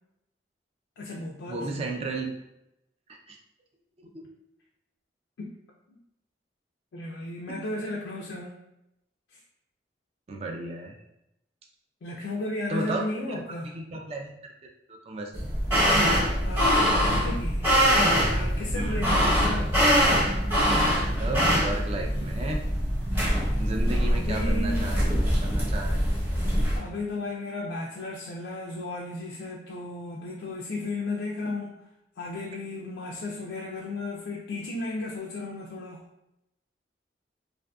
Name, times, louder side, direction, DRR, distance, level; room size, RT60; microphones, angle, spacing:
voice 1, 1.0-1.9 5.4-5.5 5.9-6.0 6.9-8.5 9.3-9.4 12.0-13.7 16.4-17.7 18.2-20.0 24.1-25.0 26.8-31.8 32.2-36.0, left 2 dB, 85° left, -2 dB, 0.4 m, -34 dB
voice 2, 1.5-2.3 3.1-3.4 4.0-4.3 10.3-11.0 12.7-13.4 13.7-14.5 14.9-15.4 18.7-19.0 21.2-22.7 23.6-25.1 25.4-26.0, right 2 dB, 35° right, 2 dB, 0.3 m, -34 dB
sound 1, 15.4-26.8, equal, 10° right, 0.8 m, -23 dB
2.5 x 2.5 x 2.2 m, 0.85 s
head